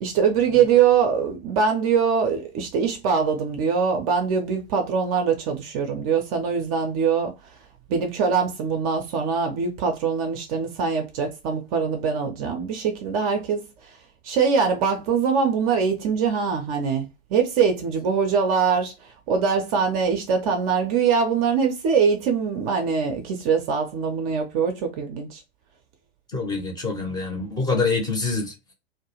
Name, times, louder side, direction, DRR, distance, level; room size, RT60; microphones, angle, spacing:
voice 1, 0.0-7.3 7.9-13.7 14.2-18.9 19.3-25.4, right 6 dB, 35° right, 0.5 m, -23 dB
voice 2, 26.3-28.7, left 4 dB, 10° left, 0.6 m, -26 dB
2.3 x 2.1 x 2.8 m
figure-of-eight pair, 100°, 32 cm